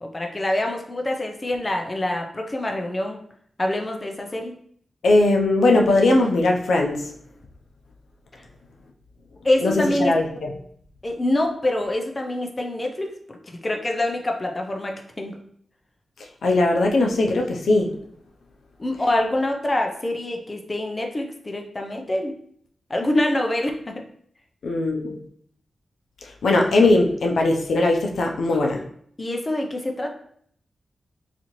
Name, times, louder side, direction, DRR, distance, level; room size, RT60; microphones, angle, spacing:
voice 1, 0.0-3.2 3.6-4.5 9.4-10.2 11.0-13.4 13.6-15.4 18.8-22.3 22.9-24.0 29.2-30.1, left 1 dB, 25° left, 3 dB, 0.5 m, -25 dB
voice 2, 5.0-7.1 9.6-9.7 10.0-10.5 16.4-17.9 24.6-25.2 26.4-28.8, left 2 dB, 85° left, 1 dB, 0.5 m, -19 dB
4.0 x 2.7 x 3.0 m, 0.63 s
wide cardioid pair, 105°, 0 cm